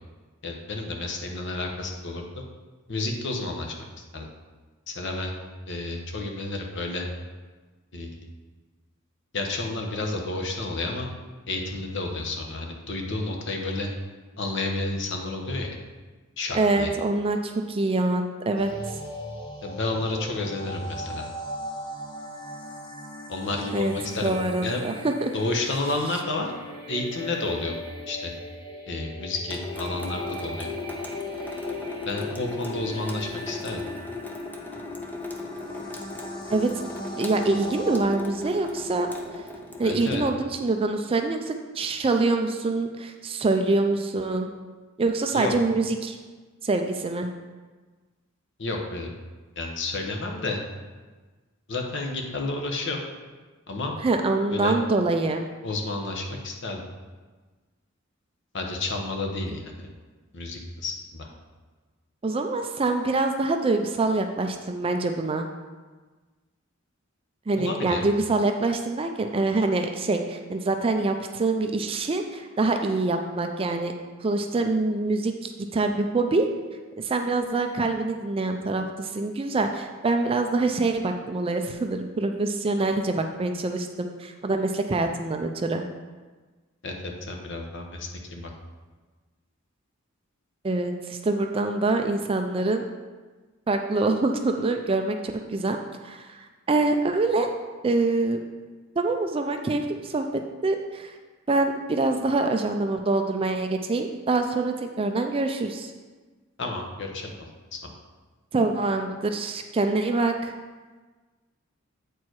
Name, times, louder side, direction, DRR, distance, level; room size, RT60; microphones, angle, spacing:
voice 1, 0.4-2.3 2.9-3.8 4.1-4.3 4.9-5.3 5.7-7.0 7.9-8.2 9.3-11.1 11.5-13.9 14.4-15.8 16.4-16.9 19.6-21.2 23.3-24.3 24.6-24.8 25.3-26.5 26.9-27.8 28.1-28.3 28.9-30.7 32.0-33.8 39.8-40.2 45.3-45.5 48.6-49.1 49.6-50.6 51.7-53.0 53.7-53.9 54.5-54.7 55.6-56.8 58.5-59.9 60.3-61.3 67.6-68.0 86.8-88.5 106.6-107.3 107.7-107.9, left 2 dB, 60° left, 2 dB, 1.1 m, -30 dB
voice 2, 16.5-19.0 23.7-23.9 24.2-25.3 36.5-36.7 37.2-39.1 39.8-44.5 45.0-46.2 46.6-47.3 54.0-55.4 62.2-65.5 67.5-73.9 74.2-76.5 77.0-85.8 90.6-92.8 93.7-95.8 96.0-97.5 97.8-98.4 99.0-101.1 101.5-105.9 108.5-110.5, right 3 dB, 25° right, 5 dB, 0.4 m, -25 dB
sound 1, 18.5-38.0, left 1 dB, 25° left, 1.1 m, -39 dB
Water tap faucet / Sink (filling or washing) / Drip, 29.5-40.3, left 2 dB, 10° left, 0.7 m, -37 dB
8.3 x 4.6 x 4.6 m, 1.3 s
head